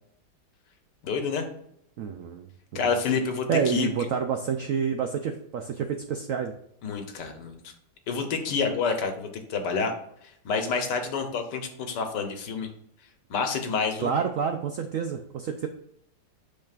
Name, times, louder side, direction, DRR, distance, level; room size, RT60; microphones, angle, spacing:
voice 1, 1.0-1.5 2.7-4.1 6.8-7.7 8.1-9.9 10.2-12.7 13.3-14.1, left 5 dB, 70° left, 6 dB, 1.5 m, -28 dB
voice 2, 2.0-2.5 3.5-6.5 14.0-15.7, right 7 dB, 75° right, 5 dB, 0.7 m, -28 dB
8.6 x 6.2 x 2.4 m, 0.72 s
omnidirectional pair, 2.0 m